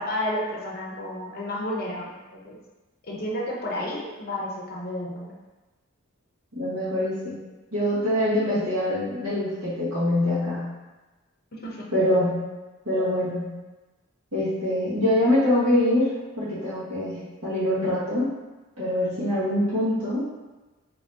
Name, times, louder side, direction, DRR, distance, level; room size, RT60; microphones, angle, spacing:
voice 1, 0.0-2.6 3.0-5.3 11.6-11.8, left 1 dB, 45° left, -3 dB, 0.6 m, -31 dB
voice 2, 6.5-7.3 7.7-10.7 11.9-12.4 12.8-13.5 14.3-18.3 18.8-20.2, left 1 dB, 80° right, -11 dB, 1.4 m, -24 dB
3.0 x 2.7 x 3.3 m, 1.2 s
head